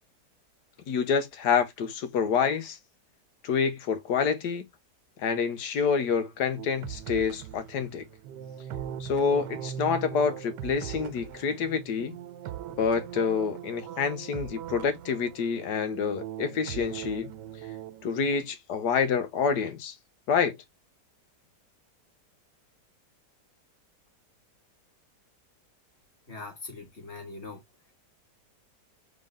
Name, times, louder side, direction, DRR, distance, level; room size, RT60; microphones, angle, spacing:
voice 1, 0.9-2.8 3.4-4.6 5.2-8.0 9.0-12.1 12.8-17.3 18.0-19.9 20.3-20.6, left 6 dB, 70° left, 1.5 m, -27 dB
sound 1, 6.6-18.4, right 10 dB, 80° right, 1.2 m, -40 dB
voice 2, 26.3-27.6, left 3 dB, 40° left, 2.1 m, -41 dB
3.8 x 3.7 x 3.6 m
omnidirectional pair, 1.8 m